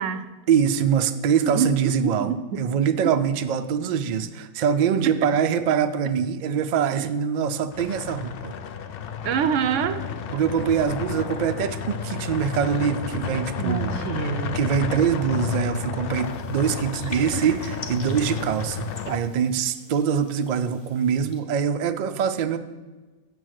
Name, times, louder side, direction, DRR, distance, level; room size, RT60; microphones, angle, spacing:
voice 1, 0.5-8.5 10.3-13.9 14.5-22.6, right 7 dB, 60° right, 9 dB, 0.4 m, -24 dB
voice 2, 1.4-2.6 5.2-5.3 6.9-7.1 9.2-10.0 13.6-14.6 17.4-17.5 19.1-19.2, right 7 dB, 90° right, 12 dB, 0.9 m, -26 dB
sound 1, 7.7-19.2, left 7 dB, 60° left, 0.6 m, -31 dB
sound 2, 16.2-21.4, left 2 dB, 40° left, 0.9 m, -44 dB
6.8 x 6.1 x 6.4 m, 1.2 s
omnidirectional pair, 1.2 m